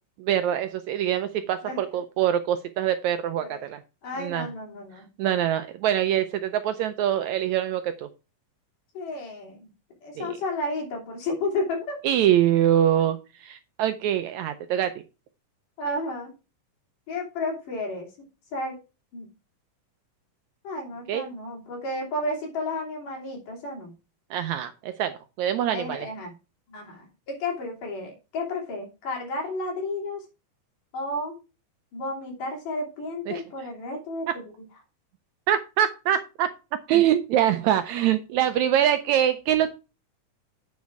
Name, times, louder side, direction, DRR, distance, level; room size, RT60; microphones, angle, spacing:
voice 1, 0.2-3.8 4.2-4.5 5.2-8.1 10.2-10.4 12.0-14.9 21.1-21.3 24.3-26.1 33.3-33.4 35.5-36.5 36.9-39.7, right 11 dB, 80° right, 10 dB, 1.7 m, -24 dB
voice 2, 4.0-5.1 8.9-9.7 10.0-12.0 15.8-16.3 17.1-18.1 18.5-18.8 19.1-19.3 20.6-23.9 25.7-26.3 26.7-30.2 30.9-31.4 31.9-34.5, left 2 dB, 75° left, 0 dB, 4.5 m, -32 dB
9.4 x 5.2 x 4.6 m, 0.29 s
omnidirectional pair, 3.8 m